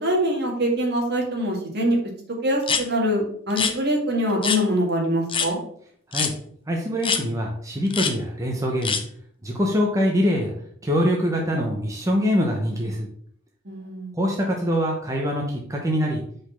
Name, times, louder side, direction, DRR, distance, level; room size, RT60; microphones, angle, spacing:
voice 1, 0.0-2.0 2.4-5.6 13.7-14.1, equal, 55° right, 0 dB, 1.8 m, -24 dB
sound 1, 2.6-2.8 3.5-3.7 4.4-4.6 5.3-5.5 6.1-6.3 7.0-7.2 7.9-8.1 8.8-9.0, left 6 dB, 25° left, 0.6 m, -24 dB
voice 2, 6.7-9.0 9.4-10.5 10.8-13.1 14.1-16.2, equal, 15° right, -1 dB, 0.9 m, -24 dB
5.2 x 4.2 x 5.7 m, 0.63 s
head